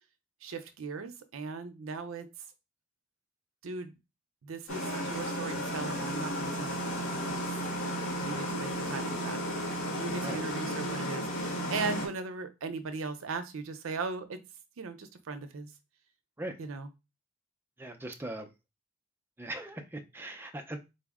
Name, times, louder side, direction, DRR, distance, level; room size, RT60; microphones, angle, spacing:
voice 1, 0.4-2.3 3.6-3.9 4.4-7.5 8.2-14.4 14.8-15.7 16.6-16.9, right 4 dB, 85° right, 0.5 m, -38 dB
sound 1, 4.7-12.1, equal, 80° left, 1.4 m, -34 dB
voice 2, 17.8-18.5 19.4-20.8, right 1 dB, 10° right, 0.4 m, -40 dB
4.1 x 2.0 x 3.5 m
head